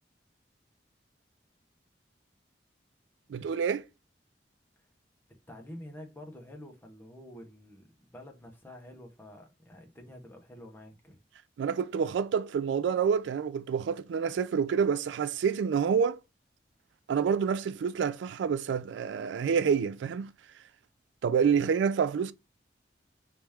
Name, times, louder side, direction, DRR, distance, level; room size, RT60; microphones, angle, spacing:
voice 1, 3.3-3.8 11.6-16.2 17.1-20.3 21.2-22.3, right 6 dB, 90° right, 0.3 m, -28 dB
voice 2, 5.5-11.2, left 1 dB, 10° left, 0.8 m, -48 dB
3.3 x 3.0 x 3.4 m
head